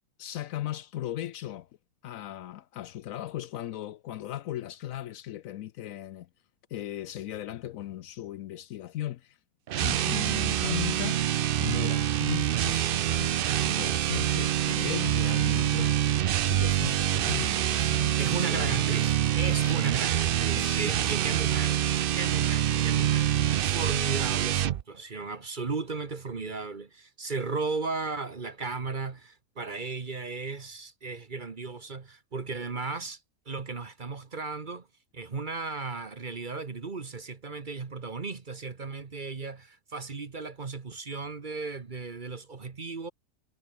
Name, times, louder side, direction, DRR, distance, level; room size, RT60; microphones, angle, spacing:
voice 1, 0.2-1.7 2.0-6.3 6.7-9.4 9.8-11.2 11.6-13.3 13.6-15.9 16.4-18.8 19.5-19.8 20.6-21.2, left 13 dB, 70° left, 0.9 m, -37 dB
sound 1, 9.7-24.8, right 11 dB, 90° right, 0.4 m, -26 dB
voice 2, 18.2-21.8 22.1-34.9 35.1-43.1, right 4 dB, 35° right, 1.3 m, -35 dB
omnidirectional pair, 1.6 m